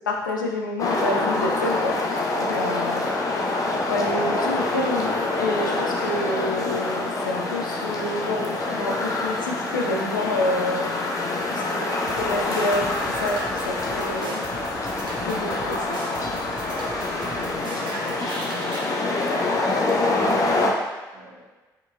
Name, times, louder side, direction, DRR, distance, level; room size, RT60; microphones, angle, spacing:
voice 1, 0.1-2.0 2.4-3.1 3.9-10.9 11.4-14.5 15.2-16.0, left 2 dB, 80° left, 0 dB, 0.4 m, -28 dB
sound 1, 0.8-20.7, left 2 dB, 35° left, 0.6 m, -26 dB
voice 2, 2.6-2.9 17.3-20.4 21.1-21.4, right 3 dB, 70° right, -6 dB, 1.0 m, -46 dB
sound 2, 12.1-18.9, right 2 dB, 50° right, 0.7 m, -39 dB
4.3 x 3.9 x 2.3 m, 1.2 s
figure-of-eight pair, 45°, 10 cm